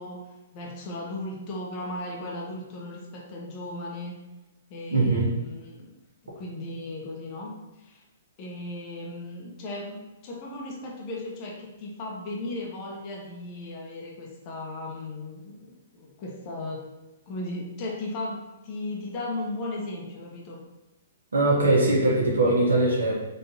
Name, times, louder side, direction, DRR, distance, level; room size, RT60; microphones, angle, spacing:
voice 1, 0.0-4.2 4.7-5.9 6.3-7.5 7.8-8.0 8.4-16.8 17.3-20.6 22.4-22.6, left 2 dB, 35° left, -2 dB, 1.1 m, -36 dB
voice 2, 4.9-5.3 21.3-23.1, right 2 dB, 80° right, -4 dB, 1.0 m, -21 dB
3.8 x 3.3 x 2.8 m, 1.1 s
figure-of-eight pair, 120°, 0 cm